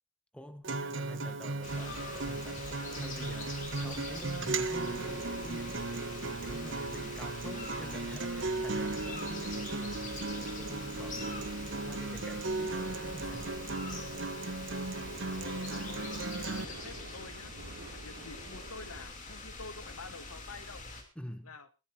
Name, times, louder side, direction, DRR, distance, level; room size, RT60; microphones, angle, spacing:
voice 1, 0.3-13.5 21.1-21.6, equal, 5° left, 8 dB, 1.2 m, -48 dB
Acoustic guitar, 0.6-16.7, right 3 dB, 55° right, 1.0 m, -36 dB
sound 1, 1.6-21.0, left 3 dB, 35° left, 3.1 m, -44 dB
sound 2, 1.7-19.0, right 2 dB, 85° right, 2.7 m, -50 dB
voice 2, 14.9-17.5 17.9-20.8 21.4-21.7, left 4 dB, 80° left, 12 dB, 1.2 m, -48 dB
21.0 x 14.5 x 2.8 m, 0.29 s
head